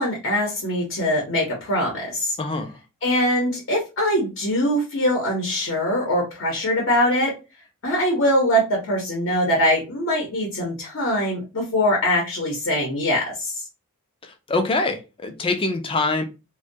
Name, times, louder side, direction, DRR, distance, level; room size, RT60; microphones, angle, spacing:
voice 1, 0.0-2.4 3.0-7.3 7.8-13.6, equal, 60° left, 0.8 m, -22 dB
voice 2, 2.4-2.8 14.2-16.2, left 3 dB, 25° left, 0.4 m, -24 dB
2.2 x 2.2 x 2.6 m
head